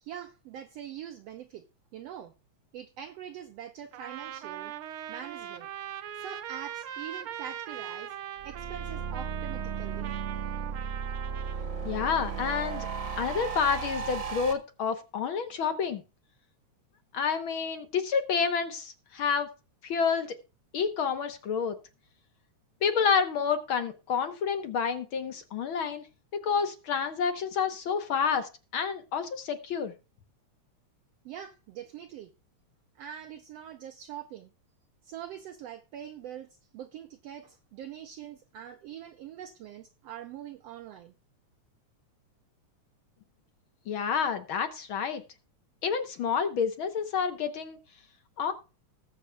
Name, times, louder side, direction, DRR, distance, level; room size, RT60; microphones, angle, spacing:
voice 1, 0.0-1.6 1.9-2.3 2.7-4.7 5.1-5.7 6.2-8.1 8.4-10.1 31.2-32.3 33.0-34.5 35.0-36.5 36.7-41.1, right 10 dB, 70° right, 1.6 m, -43 dB
Trumpet, 3.9-11.7, right 10 dB, 85° right, 1.2 m, -40 dB
sound 1, 8.4-14.5, right 6 dB, 45° right, 1.8 m, -35 dB
voice 2, 11.8-12.9 13.2-16.0 17.1-19.5 19.8-20.3 20.7-21.8 22.8-26.0 26.3-29.9 43.9-45.2 45.8-47.8 48.4-48.5, left 6 dB, 60° left, 1.4 m, -29 dB
20.0 x 7.3 x 2.3 m
omnidirectional pair, 3.4 m